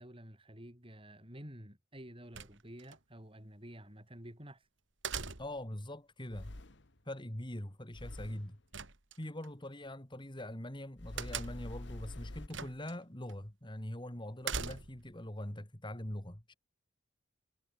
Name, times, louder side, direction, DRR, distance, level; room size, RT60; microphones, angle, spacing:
voice 1, 0.0-4.7, equal, 25° right, 6.9 m, -51 dB
sound 1, 2.3-3.0 5.0-5.7 8.7-9.5 11.2-11.8 12.5-12.9 13.3-13.4 14.4-15.1, right 6 dB, 65° right, 2.9 m, -41 dB
voice 2, 5.4-6.6 7.1-8.6 9.2-16.6, left 1 dB, 25° left, 2.4 m, -43 dB
sound 2, 6.3-7.0 7.9-8.6 11.0-12.5, left 1 dB, 60° left, 1.6 m, -46 dB
head